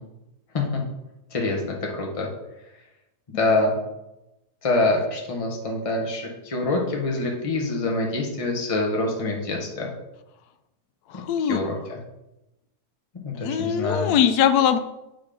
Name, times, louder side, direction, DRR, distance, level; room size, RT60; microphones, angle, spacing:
voice 1, 1.3-2.3 3.3-3.8 4.6-9.9 11.4-12.0 13.1-14.1, left 2 dB, 25° left, 0 dB, 1.1 m, -25 dB
voice 2, 11.1-11.6 13.3-14.8, left 9 dB, 80° left, 9 dB, 1.1 m, -21 dB
7.2 x 3.8 x 5.1 m, 0.93 s
omnidirectional pair, 1.7 m